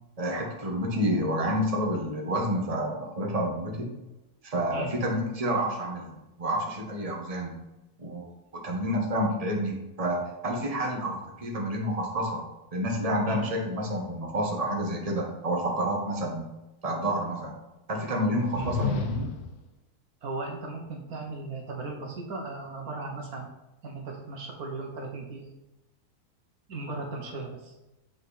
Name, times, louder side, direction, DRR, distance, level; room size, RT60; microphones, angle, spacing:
voice 1, 0.2-3.9 4.4-6.1 6.4-7.6 8.0-8.3 8.6-12.4 12.7-16.4 16.8-17.5 17.9-19.3, equal, 25° right, 0 dB, 1.4 m, -29 dB
sound 1, 18.3-19.6, left 5 dB, 85° left, 1.3 m, -32 dB
voice 2, 20.2-23.5 23.8-25.4 26.7-27.7, right 3 dB, 70° right, 1 dB, 1.6 m, -37 dB
7.7 x 5.4 x 4.2 m, 1.0 s
omnidirectional pair, 1.6 m